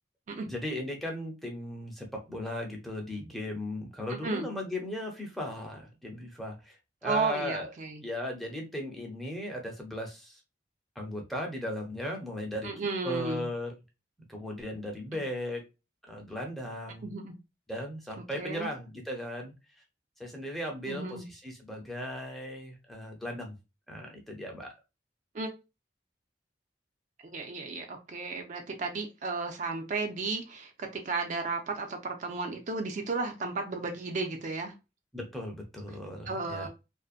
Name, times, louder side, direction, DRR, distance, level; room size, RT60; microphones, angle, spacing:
voice 1, 0.5-7.7 8.0-10.4 11.0-12.7 13.0-13.7 14.3-15.6 16.1-17.1 17.7-19.5 20.2-23.6 23.9-24.7 35.1-36.7, left 1 dB, ahead, 0 dB, 0.6 m, -37 dB
voice 2, 7.0-8.0 12.6-13.5 17.0-17.3 18.3-18.7 20.9-21.3 25.3-25.5 27.3-34.7 36.3-36.7, right 4 dB, 45° right, 4 dB, 0.4 m, -34 dB
2.6 x 2.1 x 2.3 m, 0.26 s
head